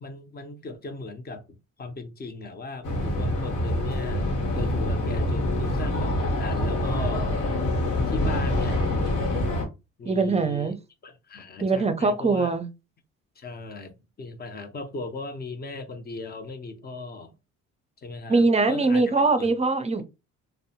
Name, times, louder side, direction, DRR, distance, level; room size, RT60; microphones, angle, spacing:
voice 1, 0.0-7.3 8.1-8.8 10.0-10.8 11.0-12.5 13.4-17.3 18.0-19.5, left 3 dB, 30° left, 0.6 m, -38 dB
sound 1, 2.8-9.7, left 1 dB, 75° left, 1.1 m, -26 dB
voice 2, 10.1-10.7 11.6-12.7 18.3-20.0, right 3 dB, 20° right, 0.5 m, -22 dB
2.6 x 2.1 x 2.7 m
cardioid pair, 90°, 30 cm